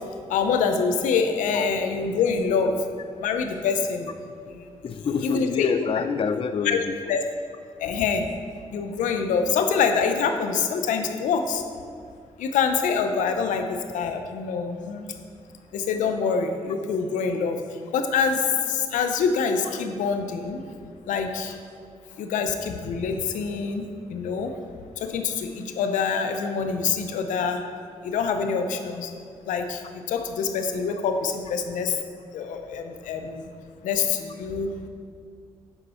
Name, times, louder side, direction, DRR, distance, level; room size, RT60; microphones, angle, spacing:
voice 1, 0.3-2.8 3.2-4.1 4.5-4.6 5.2-5.7 6.6-6.8 7.1-7.2 7.8-8.3 8.7-11.6 12.4-15.0 15.7-17.6 17.9-20.6 21.1-21.6 22.2-24.5 25.0-27.6 28.0-29.1 29.5-29.8 30.1-32.0 32.3-33.4 33.8-34.7, left 5 dB, 90° left, 6 dB, 0.6 m, -25 dB
voice 2, 4.8-6.9, left 6 dB, 45° left, 9 dB, 0.4 m, -26 dB
8.0 x 5.4 x 4.2 m, 2.2 s
supercardioid pair, 55°, 13 cm